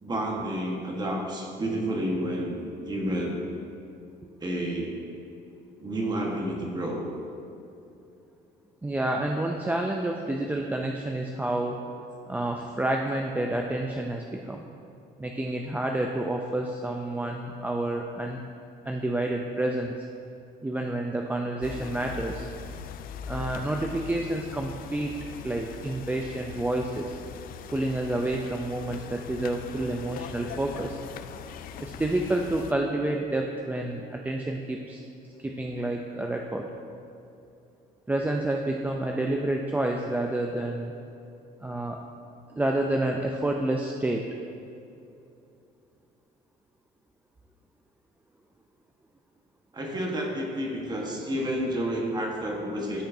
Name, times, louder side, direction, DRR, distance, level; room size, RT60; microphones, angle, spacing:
voice 1, 0.0-3.4 4.4-4.9 5.8-7.1 11.7-11.8 21.7-21.9 49.7-53.0, right 1 dB, 25° right, 0 dB, 1.3 m, -30 dB
voice 2, 8.8-11.8 12.3-14.7 15.2-18.4 18.8-20.1 20.6-22.5 23.3-25.2 25.4-27.2 27.7-31.0 31.8-35.0 35.4-36.7 38.1-40.9 41.6-42.0 42.6-44.3, right 1 dB, 10° right, 1 dB, 0.4 m, -29 dB
sound 1, 21.6-32.7, left 7 dB, 60° left, 0.4 m, -41 dB
13.0 x 5.1 x 2.7 m, 2.7 s
cardioid pair, 110°, 17 cm